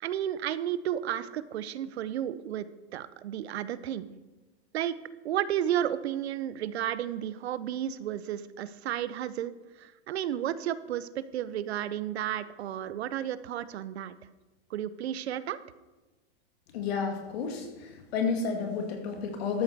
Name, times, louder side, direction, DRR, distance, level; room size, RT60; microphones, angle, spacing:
voice 1, 0.0-2.7 2.9-4.1 4.7-4.9 5.2-9.5 9.8-14.1 14.7-15.6, right 11 dB, 75° right, 15 dB, 0.8 m, -32 dB
voice 2, 16.7-19.6, left 5 dB, 70° left, 3 dB, 2.7 m, -31 dB
13.0 x 8.3 x 4.7 m, 1.2 s
hypercardioid pair, 115°, 32 cm